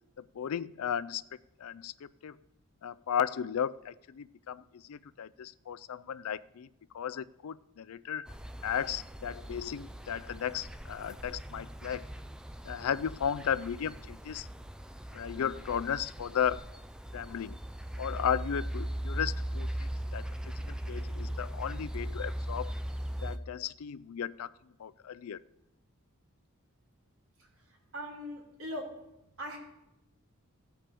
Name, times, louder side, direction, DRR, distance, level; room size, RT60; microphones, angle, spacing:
voice 1, 0.2-1.2 1.6-2.4 2.8-6.7 6.9-8.3 8.6-12.1 12.6-14.5 15.1-16.7 17.1-17.6 18.0-20.3 20.5-22.8 23.2-24.5 24.8-25.4, left 8 dB, 75° left, 19 dB, 0.4 m, -35 dB
sound 1, 8.3-23.4, right 1 dB, 5° right, 0.4 m, -39 dB
voice 2, 27.4-29.1 29.4-29.6, equal, 60° right, -2 dB, 3.6 m, -41 dB
15.5 x 5.8 x 6.9 m, 0.89 s
head